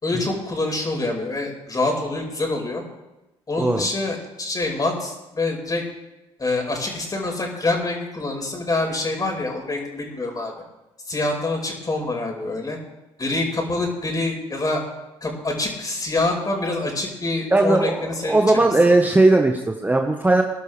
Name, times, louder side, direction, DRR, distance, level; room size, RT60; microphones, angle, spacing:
voice 1, 0.0-2.8 3.5-5.8 6.4-10.5 11.1-12.8 13.2-14.8 15.2-18.7, left 2 dB, 25° left, 0 dB, 5.2 m, -26 dB
voice 2, 17.5-20.4, right 2 dB, 10° right, 4 dB, 1.3 m, -18 dB
21.0 x 11.5 x 3.4 m, 0.98 s
figure-of-eight pair, 50°, 14 cm